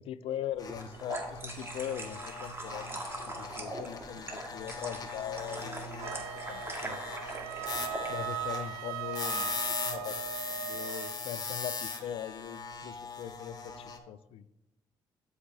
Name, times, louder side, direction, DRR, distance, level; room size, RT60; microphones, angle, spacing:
voice 1, 0.0-7.4 8.1-10.2 10.5-14.4, left 10 dB, 65° left, 16 dB, 0.4 m, -41 dB
sound 1, 0.6-14.0, left 4 dB, 40° left, 1.2 m, -40 dB
sound 2, 0.7-8.1, right 2 dB, 25° right, 1.9 m, -41 dB
Wind instrument woodwind instrument, 6.0-11.2, right 12 dB, 85° right, 0.4 m, -39 dB
12.5 x 5.0 x 2.7 m, 0.91 s
hypercardioid pair, 50°, 10 cm